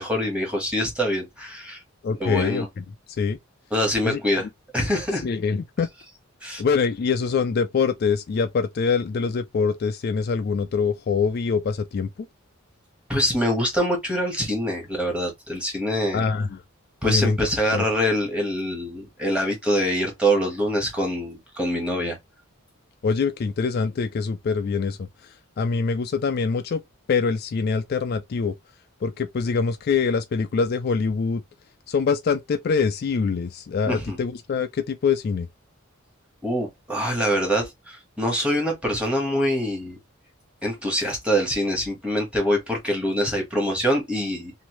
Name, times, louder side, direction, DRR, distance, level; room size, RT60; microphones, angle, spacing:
voice 1, 0.0-1.8 2.2-2.7 3.7-4.5 4.7-5.2 6.4-6.6 13.1-16.2 17.0-22.2 33.9-34.2 36.4-40.0 40.6-44.5, equal, 5° right, 1.2 m, -24 dB
voice 2, 2.0-2.8 3.2-3.4 4.0-4.2 5.2-5.9 6.6-12.1 16.1-16.6 17.0-17.4 17.7-17.8 23.0-26.8 27.1-28.5 29.0-31.4 31.9-35.5, left 5 dB, 45° left, 0.3 m, -24 dB
3.1 x 2.6 x 3.0 m
head